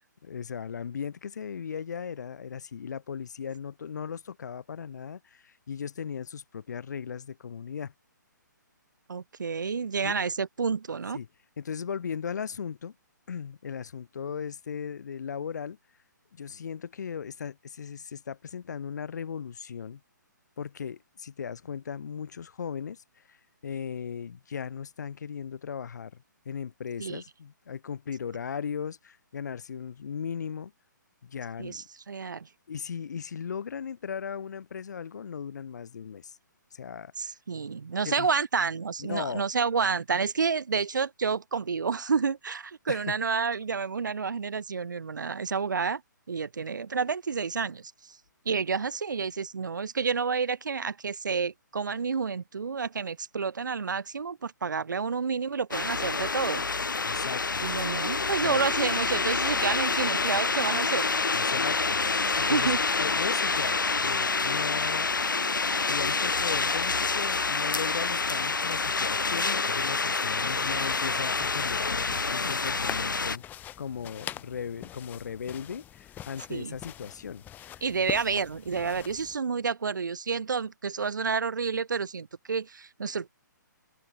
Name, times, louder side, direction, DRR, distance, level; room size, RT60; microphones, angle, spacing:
voice 1, 0.2-7.9 10.0-10.2 11.1-11.3 11.6-12.9 13.3-15.8 16.3-20.0 20.6-23.4 23.6-26.2 26.4-30.7 31.2-31.8 32.7-36.4 36.7-37.3 38.0-38.3 39.0-39.4 42.9-43.0 57.0-58.7 61.3-65.1 65.9-73.4 73.8-77.8, left 7 dB, 60° left, 6.7 m, -37 dB
voice 2, 9.1-11.2 27.0-27.2 31.6-32.5 37.2-46.0 46.3-48.2 48.5-56.6 57.6-61.1 62.5-62.8 70.7-70.8 76.5-76.8 77.8-83.3, right 5 dB, 70° right, 1.8 m, -29 dB
sound 1, 55.7-73.4, left 4 dB, 80° left, 2.9 m, -27 dB
sound 2, 70.5-79.4, left 12 dB, 15° left, 3.4 m, -44 dB
open air
figure-of-eight pair, 135°, 10 cm